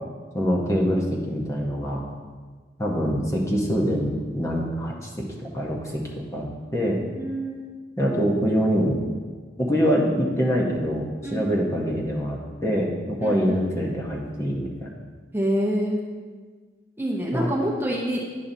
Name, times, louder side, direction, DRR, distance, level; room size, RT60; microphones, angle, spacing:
voice 1, 0.3-2.0 2.8-7.0 8.0-9.0 9.6-14.9 17.3-17.5, equal, 15° left, -2 dB, 0.8 m, -25 dB
voice 2, 7.2-7.6 11.2-11.6 13.2-13.6 15.3-16.0 17.0-18.2, equal, 10° right, -3 dB, 0.7 m, -26 dB
10.0 x 5.5 x 2.7 m, 1.5 s
head